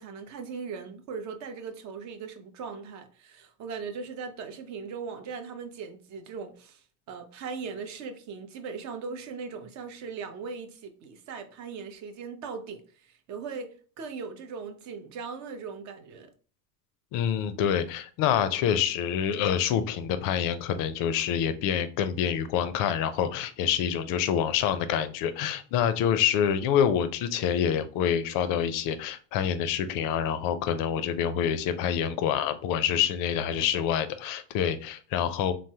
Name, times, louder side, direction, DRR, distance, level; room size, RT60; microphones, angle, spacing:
voice 1, 0.0-16.3, right 5 dB, 40° right, 0.6 m, -39 dB
voice 2, 17.1-35.5, left 8 dB, 50° left, 0.4 m, -27 dB
3.3 x 2.0 x 2.7 m
supercardioid pair, 115°, 45 cm